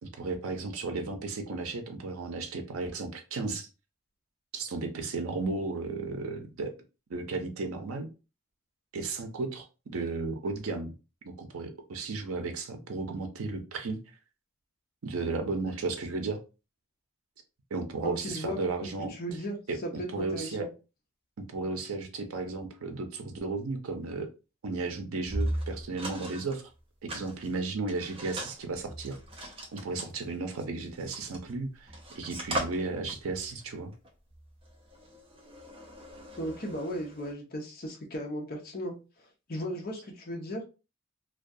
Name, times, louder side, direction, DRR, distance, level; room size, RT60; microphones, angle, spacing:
voice 1, 0.0-3.7 4.5-6.7 7.1-8.1 8.9-10.9 11.3-14.0 15.0-16.4 17.7-19.1 19.7-20.7 21.4-24.3 24.6-26.7 27.0-29.2 29.7-31.9 32.2-33.9, right 3 dB, 85° right, 5 dB, 0.5 m, -34 dB
voice 2, 18.0-18.6 19.1-20.7 36.4-38.9 39.5-40.6, equal, 45° left, 1 dB, 0.6 m, -36 dB
sound 1, 25.2-26.6 27.1-31.6 31.9-37.3, right 1 dB, 25° right, 0.5 m, -38 dB
2.3 x 2.2 x 2.5 m, 0.31 s
head